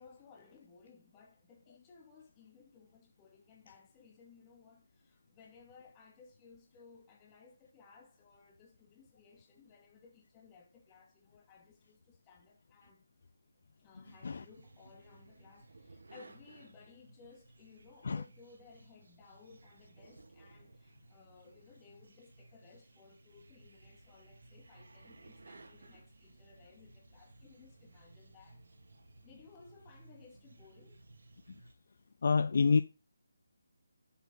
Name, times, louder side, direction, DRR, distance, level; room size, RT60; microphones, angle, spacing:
voice 1, 0.0-13.0 13.8-28.6 29.2-31.0, left 5 dB, 15° left, 2.3 m, -60 dB
sound 1, 14.0-31.7, right 2 dB, 65° right, 2.3 m, -59 dB
voice 2, 32.2-32.8, left 5 dB, 45° left, 0.6 m, -28 dB
11.5 x 7.1 x 4.0 m
hypercardioid pair, 170°, 0 cm